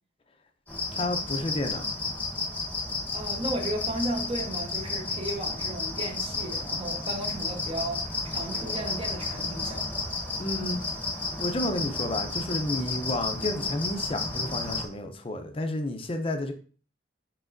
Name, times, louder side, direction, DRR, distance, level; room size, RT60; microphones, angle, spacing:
sound 1, 0.7-14.9, left 3 dB, 10° left, 0.9 m, -32 dB
voice 1, 0.9-1.9 10.4-10.8 11.4-16.5, left 1 dB, 30° left, 0.5 m, -31 dB
voice 2, 3.1-9.9, right 1 dB, 30° right, 0.8 m, -34 dB
5.1 x 3.1 x 2.5 m
head